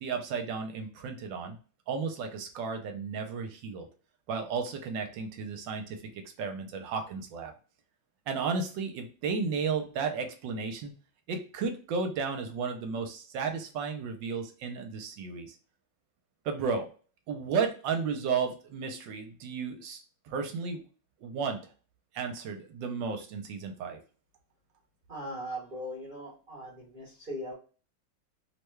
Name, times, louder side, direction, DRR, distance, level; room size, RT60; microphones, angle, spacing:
voice 1, 0.0-1.6 1.9-3.9 4.3-7.5 8.3-10.9 11.3-15.5 16.4-16.9 17.3-20.9 21.2-21.6 22.1-24.0, right 5 dB, 75° right, 5 dB, 1.2 m, -33 dB
voice 2, 25.1-27.5, equal, 40° right, -5 dB, 0.8 m, -39 dB
3.4 x 2.2 x 3.1 m, 0.38 s
omnidirectional pair, 2.1 m